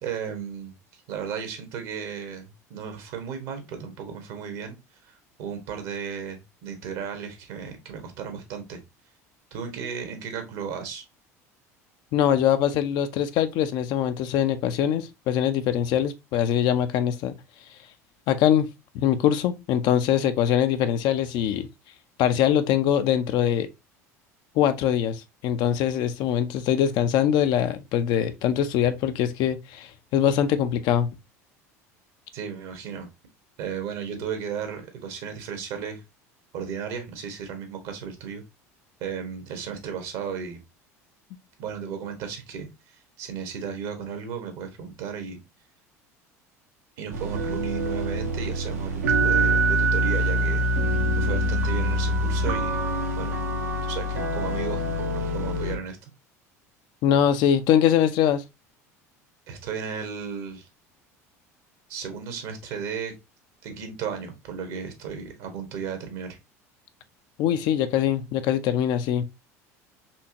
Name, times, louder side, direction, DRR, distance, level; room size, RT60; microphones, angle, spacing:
voice 1, 0.0-8.8 9.5-11.0 32.3-33.1 33.6-36.0 36.5-38.4 39.0-40.6 41.6-45.4 47.0-50.6 51.2-52.8 53.2-53.4 53.8-54.8 55.1-56.1 59.5-60.7 61.9-63.2 63.6-66.4, right 7 dB, 65° right, 1.3 m, -34 dB
voice 2, 12.1-17.3 18.3-18.7 18.9-21.7 22.2-23.7 24.6-31.1 57.0-58.4 67.4-69.2, left 10 dB, 60° left, 0.5 m, -23 dB
sound 1, 47.1-55.8, right 1 dB, 80° right, 1.1 m, -25 dB
4.4 x 2.8 x 2.7 m
hypercardioid pair, 75°, 8 cm